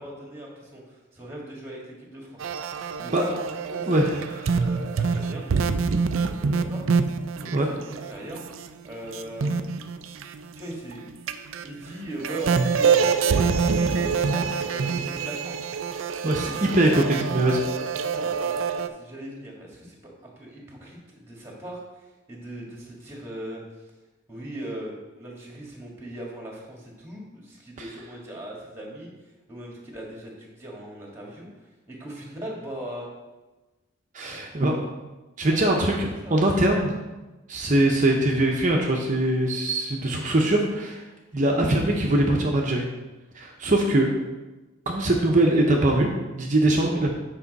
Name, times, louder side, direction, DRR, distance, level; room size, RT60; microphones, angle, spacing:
voice 1, 0.0-2.5 3.0-3.1 3.7-4.0 4.5-5.5 6.1-6.8 7.4-8.4 8.8-9.6 10.5-11.1 11.6-13.5 13.9-15.7 16.3-16.4 18.0-20.0 20.4-23.6 24.3-29.1 29.5-31.5 31.9-33.1 34.2-34.4 35.5-36.4, right 1 dB, 10° right, -2 dB, 1.6 m, -39 dB
sound 1, 2.4-8.7 9.1-11.0 11.3-18.9, right 5 dB, 75° right, 0.4 m, -26 dB
voice 2, 3.9-4.6 7.5-7.7 16.2-17.6 34.1-34.8 35.4-37.0 37.5-41.0 41.3-42.9 43.3-44.1 44.9-47.1, right 1 dB, 40° right, 0 dB, 0.8 m, -22 dB
8.4 x 5.6 x 4.1 m, 1.1 s
head